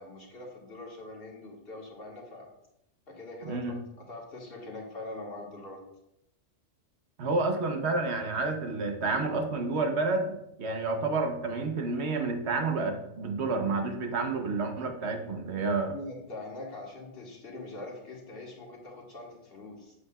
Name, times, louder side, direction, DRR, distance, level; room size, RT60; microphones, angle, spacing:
voice 1, 0.0-2.5 3.1-3.8 4.1-5.8 15.8-19.9, left 2 dB, 50° left, -3 dB, 1.9 m, -43 dB
voice 2, 3.4-3.8 7.2-15.9, right 3 dB, 65° right, 4 dB, 1.2 m, -30 dB
8.3 x 8.0 x 2.4 m, 0.82 s
omnidirectional pair, 1.2 m